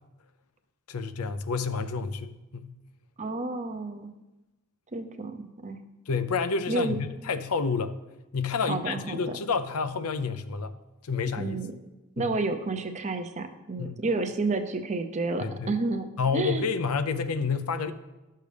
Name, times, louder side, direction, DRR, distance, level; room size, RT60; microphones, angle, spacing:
voice 1, 0.9-2.7 6.1-7.0 7.2-7.9 8.3-10.7 11.0-11.6 12.2-12.3 13.8-14.0 15.4-15.7 16.2-17.9, left 5 dB, 80° left, 11 dB, 0.6 m, -29 dB
voice 2, 3.2-4.1 4.9-5.8 6.7-7.0 8.6-9.2 11.4-11.7 12.2-16.1 16.3-16.6, right 3 dB, 30° right, 7 dB, 0.6 m, -30 dB
12.5 x 6.6 x 3.3 m, 1.0 s
head